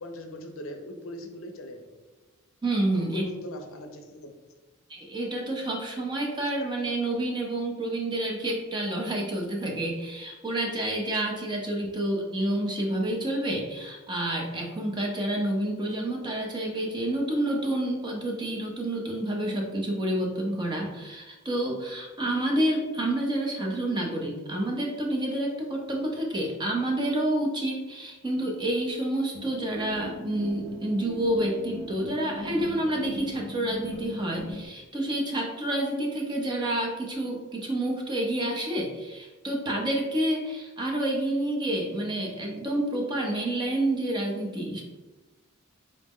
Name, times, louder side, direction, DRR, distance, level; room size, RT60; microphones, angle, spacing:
voice 1, 0.0-2.0 2.9-4.3, left 1 dB, 65° left, 4 dB, 0.5 m, -40 dB
voice 2, 2.6-3.2 4.9-44.8, right 1 dB, 20° right, 0 dB, 0.5 m, -29 dB
sound 1, 29.3-34.7, equal, 75° right, 0.7 m, -40 dB
3.9 x 2.0 x 3.5 m, 1.2 s
head